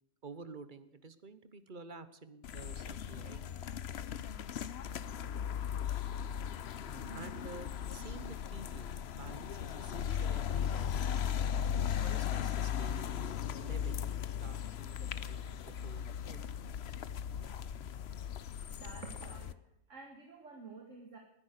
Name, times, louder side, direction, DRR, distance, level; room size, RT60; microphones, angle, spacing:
voice 1, 0.2-3.4 7.1-8.9 9.2-11.5 12.0-14.1 14.4-16.5, right 4 dB, 40° right, 12 dB, 1.2 m, -51 dB
sound 1, 2.4-19.5, left 9 dB, 55° left, 0.9 m, -37 dB
voice 2, 6.9-7.5 18.7-19.6 19.9-21.2, right 4 dB, 60° right, 2 dB, 2.2 m, -50 dB
20.0 x 10.5 x 6.7 m, 0.81 s
omnidirectional pair, 1.4 m